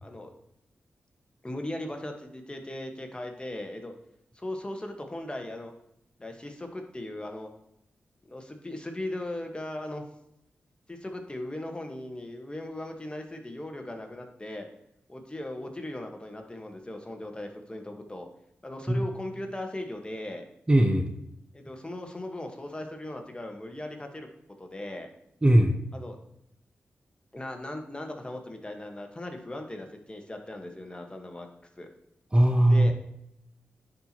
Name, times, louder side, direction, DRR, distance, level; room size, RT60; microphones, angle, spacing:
voice 1, 1.4-3.9 4.3-5.7 6.2-7.5 8.2-10.0 10.9-14.7 15.1-18.3 18.6-20.5 21.5-24.3 24.6-25.1 25.9-26.2 27.3-31.5 31.8-31.9 32.7-32.9, left 1 dB, 20° left, 4 dB, 1.3 m, -38 dB
voice 2, 20.7-21.1 25.4-25.7 32.3-32.9, right 1 dB, 20° right, 5 dB, 0.8 m, -20 dB
10.0 x 4.4 x 2.9 m, 0.78 s
cardioid pair, 45°, 4 cm